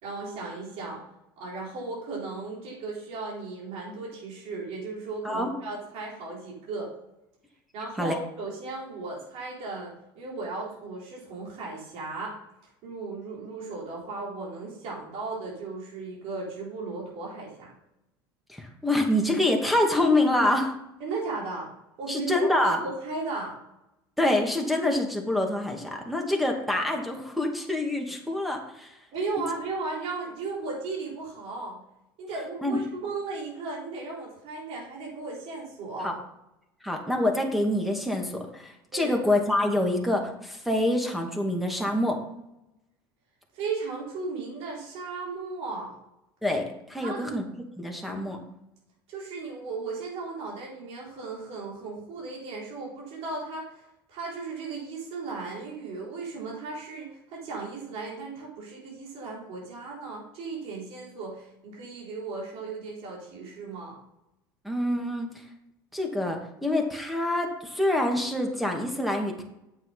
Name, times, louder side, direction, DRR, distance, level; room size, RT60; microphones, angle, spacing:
voice 1, 0.0-1.0 1.4-6.9 7.7-12.3 12.8-17.7 21.0-21.7 22.0-22.5 22.8-23.6 29.1-31.8 32.2-36.2 38.9-39.2 43.5-45.9 47.0-47.4 49.1-64.0, right 3 dB, 60° right, -4 dB, 4.1 m, -36 dB
voice 2, 18.5-20.7 22.1-22.8 24.2-28.9 32.6-32.8 36.0-36.1 36.8-42.2 46.4-47.4 47.8-48.4 64.6-65.4 65.9-69.4, left 1 dB, ahead, 2 dB, 2.3 m, -26 dB
8.9 x 8.0 x 4.1 m, 0.87 s
hypercardioid pair, 80°, 12 cm